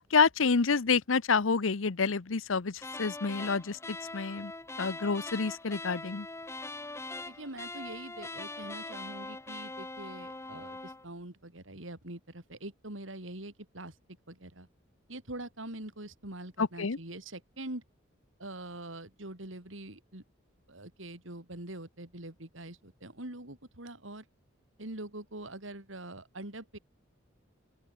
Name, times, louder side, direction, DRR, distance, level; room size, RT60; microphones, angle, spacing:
voice 1, 0.0-4.5 4.8-6.3 16.6-17.0, left 5 dB, 85° left, 0.9 m, -28 dB
sound 1, 2.8-11.0, left 2 dB, 15° left, 1.8 m, -42 dB
voice 2, 7.3-13.9 14.3-14.7 15.1-17.8 18.4-20.2 20.7-24.2 24.8-26.8, right 1 dB, 75° right, 4.2 m, -44 dB
open air
head